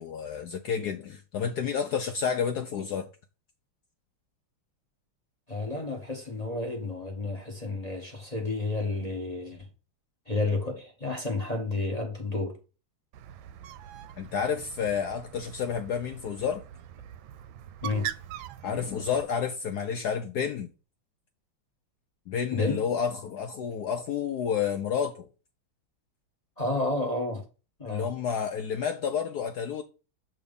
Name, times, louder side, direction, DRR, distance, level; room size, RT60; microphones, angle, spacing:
voice 1, 0.0-3.1 14.2-16.6 18.6-20.7 22.3-25.3 27.9-29.8, left 7 dB, 75° left, 0.9 m, -30 dB
voice 2, 5.5-9.6 10.3-12.6 17.8-18.1 22.5-22.8 26.6-27.4 27.8-28.1, left 2 dB, 25° left, 0.8 m, -31 dB
Bird, 13.1-19.2, right 11 dB, 75° right, 1.3 m, -42 dB
7.7 x 3.0 x 5.2 m
omnidirectional pair, 2.3 m